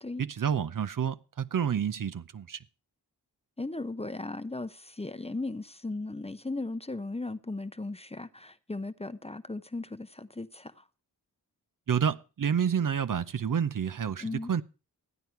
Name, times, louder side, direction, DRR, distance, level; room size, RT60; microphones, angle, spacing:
voice 1, 0.2-2.6 11.9-14.6, right 7 dB, 50° right, 0.7 m, -29 dB
voice 2, 3.6-10.8 14.2-14.5, left 2 dB, 15° left, 0.7 m, -37 dB
14.0 x 9.2 x 4.5 m
cardioid pair, 40°, 41 cm